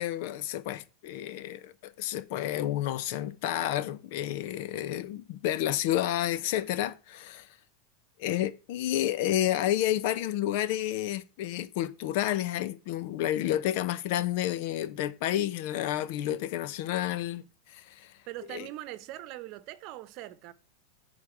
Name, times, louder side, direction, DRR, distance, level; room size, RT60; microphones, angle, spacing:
voice 1, 0.0-7.5 8.2-17.4 17.7-18.1 18.5-18.7, left 12 dB, 60° left, 0.9 m, -30 dB
voice 2, 18.3-20.5, right 15 dB, 50° right, 0.9 m, -41 dB
9.7 x 4.1 x 7.2 m
supercardioid pair, 125°, 0 cm